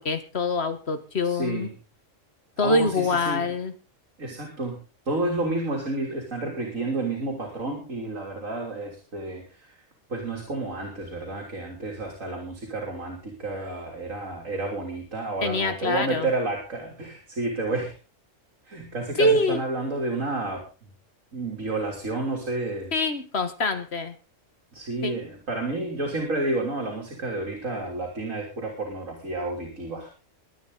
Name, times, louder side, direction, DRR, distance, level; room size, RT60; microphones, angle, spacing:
voice 1, 0.0-1.7 2.6-3.7 15.4-16.3 19.2-19.6 22.9-24.2 25.0-25.2, left 2 dB, 55° left, 9 dB, 2.0 m, -25 dB
voice 2, 1.2-1.7 2.6-3.5 4.2-4.8 5.1-9.7 10.1-18.0 18.7-20.6 21.3-22.9 24.7-30.1, right 2 dB, 80° right, -1 dB, 3.9 m, -30 dB
23.0 x 9.4 x 4.1 m, 0.33 s
omnidirectional pair, 1.3 m